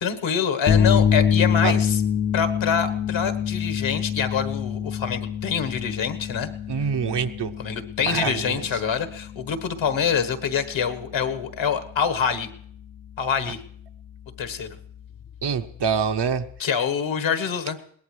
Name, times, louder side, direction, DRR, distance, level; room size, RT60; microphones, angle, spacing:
voice 1, 0.0-2.0 2.3-6.5 7.6-12.5 13.2-13.6 14.4-14.8 16.6-17.8, left 7 dB, 75° left, 8 dB, 1.4 m, -25 dB
sound 1, 0.7-16.6, left 8 dB, 35° left, 0.5 m, -27 dB
voice 2, 6.7-7.5 8.1-8.7 15.4-16.4, right 6 dB, 60° right, 7 dB, 0.9 m, -25 dB
21.5 x 18.0 x 3.3 m, 0.62 s
cardioid pair, 60°, 46 cm